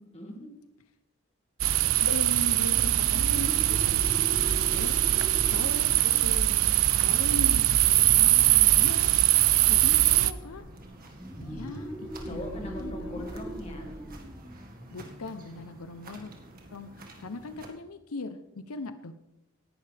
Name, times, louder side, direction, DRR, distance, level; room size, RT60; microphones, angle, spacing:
voice 1, 0.1-0.5 12.3-13.9, left 1 dB, 30° left, 2 dB, 2.1 m, -40 dB
sound 1, 1.6-17.7, right 1 dB, 40° right, 1.9 m, -49 dB
sound 2, 1.6-10.3, right 14 dB, 70° right, 0.5 m, -22 dB
voice 2, 2.0-4.3 4.7-5.0 5.5-9.1 9.7-10.6 11.4-13.3 14.9-16.3 16.7-18.4 18.7-19.1, left 3 dB, 90° left, 10 dB, 0.8 m, -39 dB
sound 3, 2.8-8.1 11.2-16.5, right 1 dB, 10° right, 1.8 m, -41 dB
18.0 x 11.5 x 3.5 m, 0.90 s
head